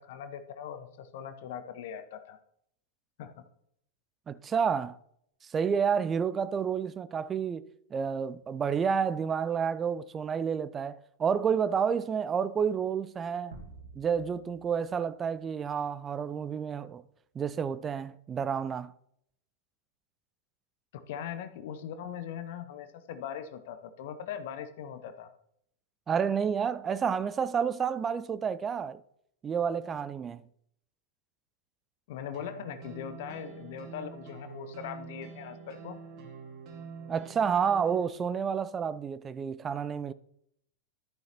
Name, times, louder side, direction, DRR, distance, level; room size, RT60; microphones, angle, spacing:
voice 1, 0.0-2.4 3.2-3.3 20.9-25.3 32.1-36.0, left 9 dB, 50° left, 0.7 m, -40 dB
voice 2, 4.3-5.0 5.5-7.6 7.9-13.6 14.0-17.0 17.4-18.9 26.1-29.0 29.4-30.4 37.1-40.1, right 7 dB, 20° right, 0.4 m, -30 dB
sound 1, 13.5-15.9, right 3 dB, 70° right, 1.6 m, -51 dB
sound 2, 32.3-38.1, right 5 dB, 35° right, 2.0 m, -46 dB
12.0 x 10.5 x 2.9 m
figure-of-eight pair, 90°, 0 cm